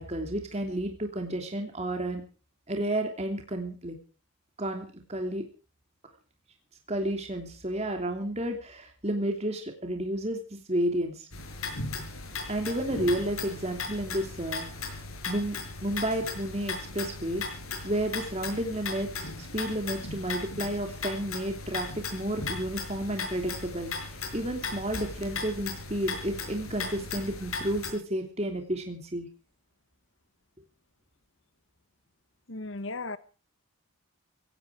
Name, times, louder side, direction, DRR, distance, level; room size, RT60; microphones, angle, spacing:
voice 1, 0.0-2.2 2.7-3.9 4.6-5.4 6.9-11.3 12.5-15.6 15.8-17.4 17.8-29.3, right 1 dB, 30° right, 3.0 m, -31 dB
sound 1, 11.3-27.9, left 4 dB, 85° left, 6.4 m, -37 dB
voice 2, 32.5-33.2, left 3 dB, 65° left, 1.1 m, -35 dB
17.0 x 17.0 x 4.9 m
head